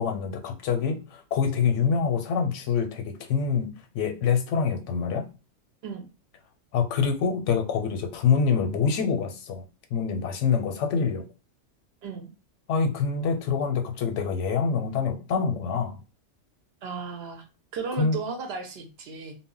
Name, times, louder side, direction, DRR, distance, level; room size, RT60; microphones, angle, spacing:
voice 1, 0.0-5.2 6.7-9.6 9.9-11.2 12.7-16.0 18.0-18.2, left 6 dB, 85° left, 6 dB, 0.9 m, -25 dB
voice 2, 16.8-17.4 17.7-19.4, right 5 dB, 65° right, 4 dB, 0.7 m, -35 dB
2.1 x 2.1 x 3.7 m, 0.32 s
omnidirectional pair, 1.2 m